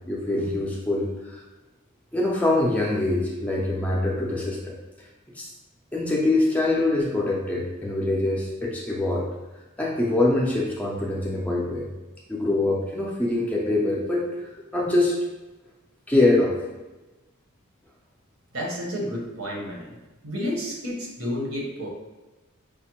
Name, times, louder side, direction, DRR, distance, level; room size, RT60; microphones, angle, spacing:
voice 1, 0.1-1.4 2.1-4.7 5.3-5.5 5.9-9.3 9.8-11.9 12.3-15.1 16.1-16.5, left 2 dB, 5° left, -4 dB, 0.4 m, -24 dB
voice 2, 18.5-19.9 20.2-21.9, equal, 70° right, -2 dB, 0.9 m, -31 dB
4.8 x 2.0 x 2.9 m, 1.1 s
head